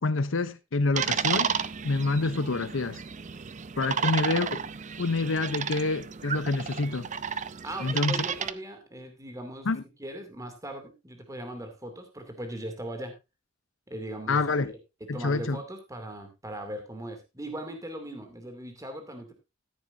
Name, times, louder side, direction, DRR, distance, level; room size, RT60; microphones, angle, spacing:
voice 1, 0.0-3.0 3.8-4.6 5.0-7.1 7.8-8.2 9.6-9.8 14.3-14.7 15.1-15.6, left 3 dB, 75° left, 0.7 m, -27 dB
sound 1, 0.9-8.5, right 7 dB, 40° right, 0.6 m, -32 dB
voice 2, 7.6-9.7 10.0-13.1 13.9-14.4 15.0-19.3, right 1 dB, 15° right, 2.5 m, -39 dB
13.5 x 10.5 x 2.6 m
head